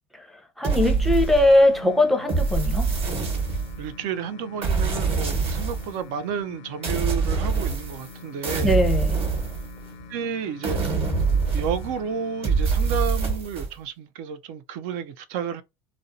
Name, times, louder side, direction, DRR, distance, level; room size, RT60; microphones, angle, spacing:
voice 1, 0.6-2.9 8.6-9.2, left 1 dB, ahead, 0.6 m, -20 dB
sound 1, 0.6-1.8 2.3-3.9 4.6-5.9 6.8-8.1 8.4-10.0 10.6-12.0 12.4-13.7, right 4 dB, 40° right, 1.1 m, -24 dB
sound 2, 1.1-13.1, left 4 dB, 75° left, 0.5 m, -44 dB
voice 2, 3.8-8.8 10.1-10.8 11.5-15.6, right 7 dB, 60° right, 0.4 m, -31 dB
2.5 x 2.0 x 2.5 m
hypercardioid pair, 90°, 15 cm